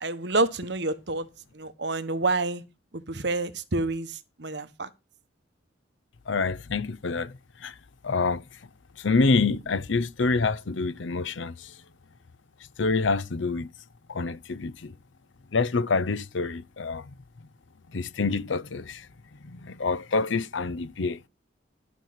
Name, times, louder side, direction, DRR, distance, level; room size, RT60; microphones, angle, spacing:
voice 1, 0.0-1.3 1.5-2.6 2.9-4.9, right 2 dB, 65° right, 1.1 m, -28 dB
voice 2, 6.3-7.8 8.0-8.6 9.0-11.8 12.8-13.7 14.1-14.9 15.5-17.1 17.9-21.2, left 4 dB, 80° left, 0.7 m, -27 dB
12.0 x 6.2 x 5.7 m
head